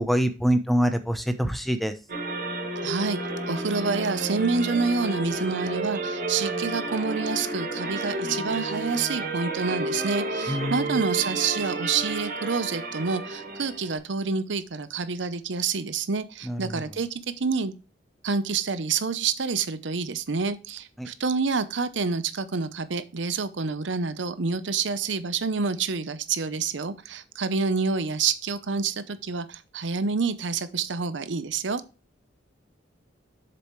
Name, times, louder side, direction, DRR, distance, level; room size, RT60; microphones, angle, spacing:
voice 1, 0.0-1.9 10.5-10.9 16.5-16.6 21.0-21.1, equal, ahead, 9 dB, 0.7 m, -25 dB
sound 1, 2.1-14.0, right 2 dB, 50° right, 2.1 m, -31 dB
voice 2, 2.8-3.2 3.5-17.7 18.2-31.8, right 5 dB, 75° right, 13 dB, 0.7 m, -28 dB
7.8 x 6.9 x 3.1 m, 0.31 s
head